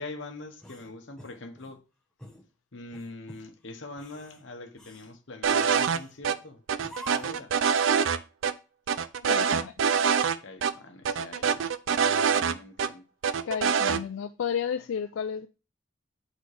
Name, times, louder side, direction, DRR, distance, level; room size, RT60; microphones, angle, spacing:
voice 1, 0.0-1.8 2.7-6.6 7.1-7.6 10.4-13.0, left 2 dB, 65° left, 1.0 m, -43 dB
sound 1, 0.6-1.8 2.2-2.4 2.9-3.5 3.9-4.4 4.8-5.1 5.7-6.2 6.8-7.5, equal, 5° left, 0.9 m, -47 dB
sound 2, 5.4-6.0 6.2-6.4 6.7-8.2 8.4-8.5 8.9-10.3 10.6-10.7 11.0-12.9 13.2-14.0, right 6 dB, 75° right, 0.4 m, -25 dB
voice 2, 9.2-9.7 13.4-15.5, left 7 dB, 85° left, 0.4 m, -32 dB
8.1 x 4.1 x 3.3 m
head